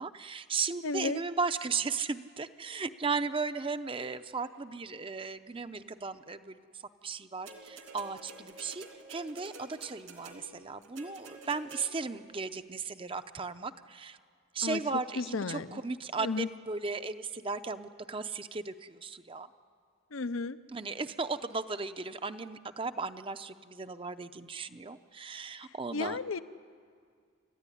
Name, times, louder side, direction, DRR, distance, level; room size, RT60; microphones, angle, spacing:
voice 1, 0.0-6.6 7.0-14.2 14.5-19.5 20.7-26.2, right 4 dB, 25° right, 10 dB, 0.6 m, -36 dB
voice 2, 0.8-1.2 14.6-14.8 15.2-15.8 16.2-16.5 20.1-20.6 25.6-26.4, left 4 dB, 80° left, 13 dB, 0.7 m, -34 dB
sound 1, 7.5-12.2 13.2-13.3, right 3 dB, 75° right, 3.1 m, -49 dB
28.0 x 14.0 x 9.9 m, 2.1 s
head